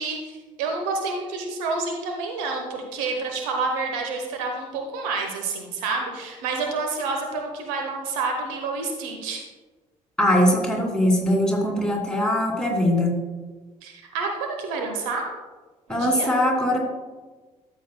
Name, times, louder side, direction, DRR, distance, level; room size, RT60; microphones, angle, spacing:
voice 1, 0.0-9.4 13.8-15.3 15.9-16.3, right 4 dB, 70° right, 3 dB, 1.0 m, -29 dB
voice 2, 10.2-13.2 15.9-16.8, left 1 dB, 5° left, 0 dB, 2.5 m, -21 dB
13.0 x 7.1 x 2.2 m, 1.3 s
figure-of-eight pair, 45°, 18 cm